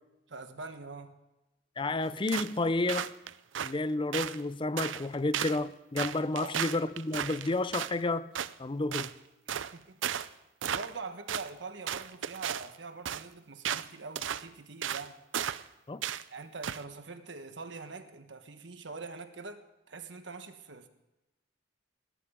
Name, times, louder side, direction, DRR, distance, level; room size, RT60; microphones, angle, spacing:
voice 1, 0.3-1.2 6.3-6.6 9.7-10.0 10.7-15.2 16.3-19.6 19.9-20.9, right 4 dB, 70° right, 1.4 m, -43 dB
voice 2, 1.8-3.1 3.6-8.3 8.6-9.1 15.9-16.0, left 2 dB, 25° left, 0.5 m, -31 dB
sound 1, 2.3-2.6 2.9-3.7 4.1-4.4 4.8-5.1 5.3-5.6 6.0-7.9 8.3-8.5 8.9-9.1 9.5-9.7 10.0-10.3 10.6-11.0 11.3-11.5 11.9-12.7 13.1-13.2 13.6-13.9 14.2-14.4 14.8-15.1 15.3-15.7 16.0-16.2 16.6-16.8, right 9 dB, 85° right, 0.5 m, -34 dB
19.5 x 12.5 x 3.7 m
head